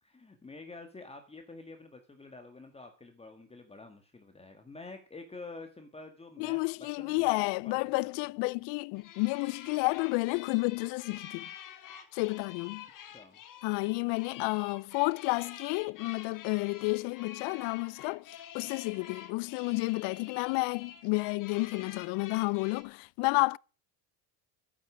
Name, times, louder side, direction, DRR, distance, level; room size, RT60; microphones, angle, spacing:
voice 1, 0.0-7.4 7.6-8.2 13.0-13.4, left 3 dB, 15° left, 1.8 m, -48 dB
voice 2, 6.4-11.5 12.1-12.9 13.6-23.6, left 27 dB, 65° left, 0.5 m, -31 dB
sound 1, 8.9-22.8, left 9 dB, 45° left, 2.1 m, -48 dB
12.0 x 9.7 x 6.2 m
cardioid pair, 125°, 44 cm